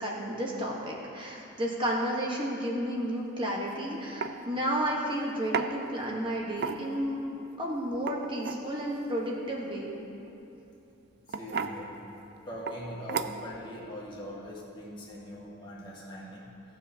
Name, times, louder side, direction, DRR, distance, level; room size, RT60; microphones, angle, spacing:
voice 1, 0.0-7.2 7.6-9.9, equal, 25° right, -2 dB, 1.2 m, -32 dB
sound 1, 3.5-3.7 4.2-4.4 5.5-5.7 6.5-7.1 7.9-8.6 10.3-10.5 11.3-11.8 12.7-12.8 13.1-13.6, right 5 dB, 50° right, 0.4 m, -33 dB
voice 2, 11.3-12.0 12.4-16.5, equal, 20° left, -6 dB, 1.7 m, -41 dB
17.0 x 7.2 x 2.8 m, 2.8 s
head